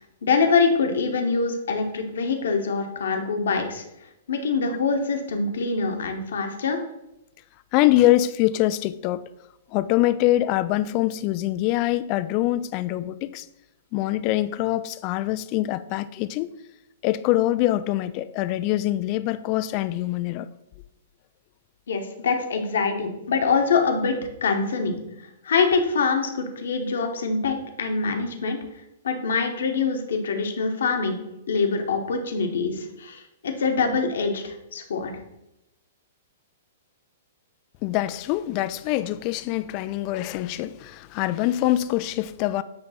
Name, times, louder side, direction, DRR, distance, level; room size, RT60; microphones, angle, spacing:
voice 1, 0.2-3.8 4.3-6.8 21.9-25.0 25.4-28.6 29.0-31.2 31.5-35.1, left 4 dB, 60° left, 4 dB, 1.1 m, -24 dB
voice 2, 7.7-9.2 9.7-13.5 13.9-16.5 17.0-20.5 37.8-42.6, left 15 dB, 35° left, 14 dB, 0.4 m, -24 dB
8.9 x 3.2 x 5.5 m, 0.89 s
figure-of-eight pair, 110°, 0 cm